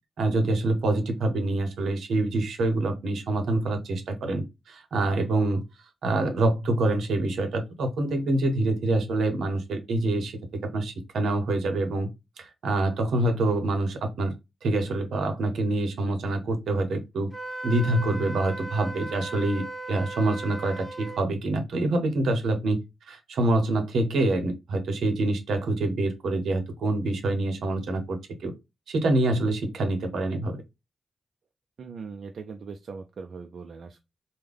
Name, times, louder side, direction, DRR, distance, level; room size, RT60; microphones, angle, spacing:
voice 1, 0.2-5.6 6.0-10.4 10.7-12.1 12.4-14.3 14.6-17.3 17.6-22.8 23.1-28.5 28.9-30.6, right 2 dB, 80° right, 0.8 m, -26 dB
Wind instrument woodwind instrument, 17.3-21.2, right 1 dB, 25° right, 1.5 m, -37 dB
voice 2, 31.8-34.0, right 5 dB, 65° right, 0.4 m, -40 dB
3.6 x 2.2 x 3.3 m
cardioid pair, 60°, 0 cm